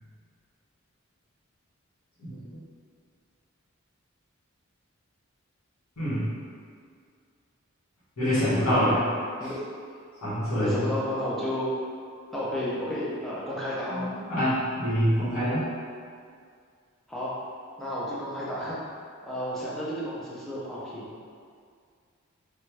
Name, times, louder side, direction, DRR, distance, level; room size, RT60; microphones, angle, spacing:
voice 1, 6.0-6.3 8.2-9.0 10.2-10.9 13.9-15.7, equal, 70° left, -13 dB, 1.5 m, -25 dB
voice 2, 10.5-11.8 12.3-14.1 17.1-17.4 17.8-18.8 19.2-21.2, equal, ahead, -9 dB, 0.5 m, -32 dB
2.6 x 2.1 x 3.1 m, 2.2 s
head